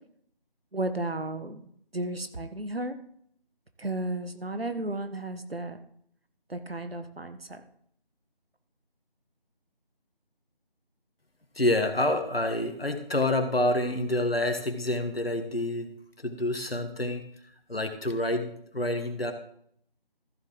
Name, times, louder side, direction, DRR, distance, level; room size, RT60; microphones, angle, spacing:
voice 1, 0.7-3.0 3.8-5.8 6.5-7.6, right 2 dB, 75° right, 8 dB, 1.4 m, -34 dB
voice 2, 11.5-15.9 16.2-17.2 17.7-19.3, left 1 dB, 75° left, 6 dB, 1.8 m, -28 dB
14.0 x 7.1 x 3.9 m, 0.66 s
figure-of-eight pair, 165°, 30 cm